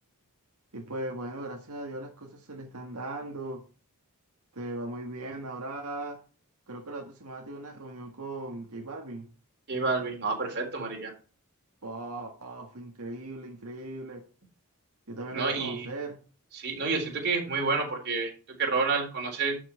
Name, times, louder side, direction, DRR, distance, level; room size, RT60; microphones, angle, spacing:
voice 1, 0.7-3.7 4.5-6.2 6.7-9.3 11.8-14.3 15.1-16.2, right 2 dB, 80° right, 0 dB, 1.8 m, -38 dB
voice 2, 9.7-11.1 15.3-15.9 16.5-18.3 18.6-19.6, right 4 dB, 50° right, 2 dB, 3.7 m, -29 dB
12.0 x 6.2 x 4.5 m, 0.37 s
head